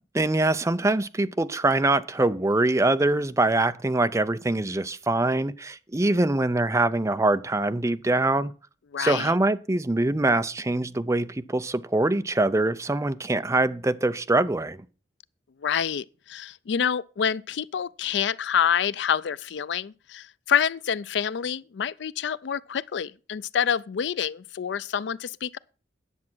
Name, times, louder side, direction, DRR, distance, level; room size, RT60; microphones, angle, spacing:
voice 1, 0.1-8.5 9.0-14.8, right 2 dB, 15° right, 0.5 m, -24 dB
voice 2, 8.9-9.3 15.6-25.6, left 8 dB, 70° left, 0.4 m, -27 dB
9.8 x 7.2 x 6.1 m
head